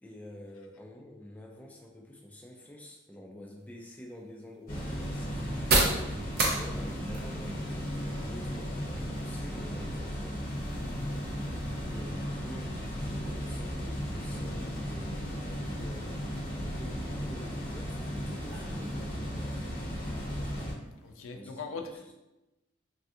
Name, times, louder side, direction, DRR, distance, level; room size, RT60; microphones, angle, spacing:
voice 1, 0.0-10.4 11.8-19.6 21.3-22.1, equal, 10° left, 0 dB, 0.3 m, -48 dB
sound 1, 3.6-21.2, right 2 dB, 50° right, 0.6 m, -38 dB
sound 2, 4.7-20.7, equal, 45° left, 0.7 m, -35 dB
voice 2, 21.0-21.9, left 4 dB, 85° left, 5 dB, 0.4 m, -40 dB
3.3 x 2.4 x 2.6 m, 0.98 s
head